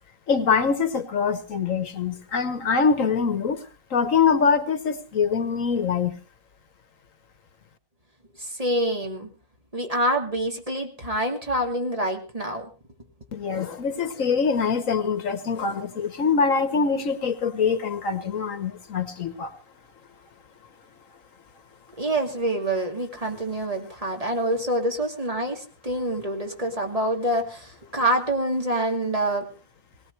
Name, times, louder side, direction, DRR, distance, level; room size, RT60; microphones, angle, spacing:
voice 1, 0.3-3.6 3.9-6.2 13.3-19.5, left 5 dB, 65° left, 11 dB, 1.5 m, -24 dB
voice 2, 8.3-9.3 9.7-12.7 22.0-29.5, right 1 dB, 25° right, 2 dB, 2.4 m, -26 dB
19.0 x 18.5 x 3.2 m, 0.32 s
omnidirectional pair, 1.5 m